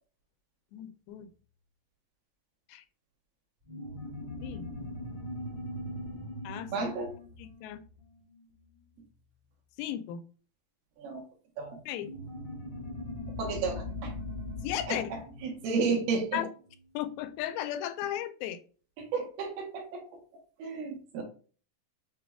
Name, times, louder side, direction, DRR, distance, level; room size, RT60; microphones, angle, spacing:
voice 1, 0.7-1.3 2.7-2.8 4.4-4.7 6.4-6.7 7.4-7.8 9.8-10.2 11.9-12.1 14.6-15.1 16.3-16.5 16.9-18.6, left 11 dB, 85° left, 9 dB, 2.4 m, -35 dB
sound 1, 3.6-8.6 12.0-16.9, left 1 dB, 40° right, 0.6 m, -41 dB
voice 2, 6.7-7.1 11.0-11.2 11.6-11.8 13.4-14.1 14.9-15.0 15.4-16.4 19.0-20.0 20.6-21.2, right 4 dB, 85° right, 1 dB, 3.0 m, -32 dB
6.5 x 2.3 x 3.4 m, 0.40 s
omnidirectional pair, 4.2 m